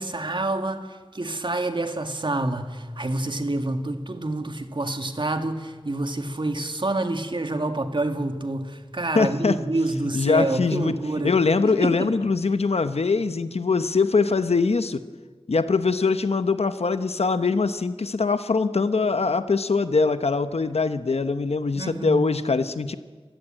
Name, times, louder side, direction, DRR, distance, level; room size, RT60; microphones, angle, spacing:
voice 1, 0.0-11.3 11.6-12.1 21.8-22.3, right 2 dB, 50° right, 1.9 m, -27 dB
voice 2, 9.1-9.6 10.1-11.0 11.2-15.0 15.5-23.0, left 4 dB, 85° left, 0.9 m, -22 dB
27.5 x 15.5 x 8.9 m
wide cardioid pair, 60°, 10 cm